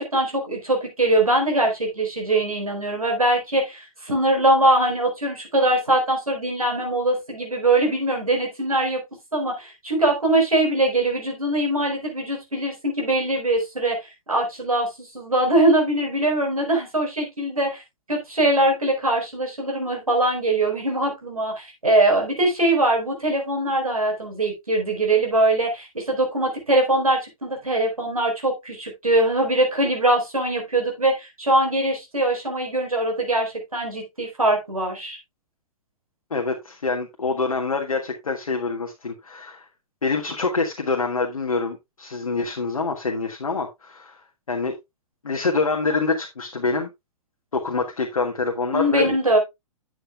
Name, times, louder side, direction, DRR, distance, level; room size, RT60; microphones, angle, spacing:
voice 1, 0.0-9.0 9.3-17.8 18.1-35.2 48.7-49.4, right 1 dB, 85° right, 2 dB, 4.5 m, -22 dB
voice 2, 36.3-39.7 40.0-44.2 44.5-44.7 45.2-46.9 47.5-49.1, left 4 dB, 75° left, 3 dB, 1.5 m, -26 dB
11.5 x 8.0 x 2.3 m, 0.20 s
figure-of-eight pair, 115°, 18 cm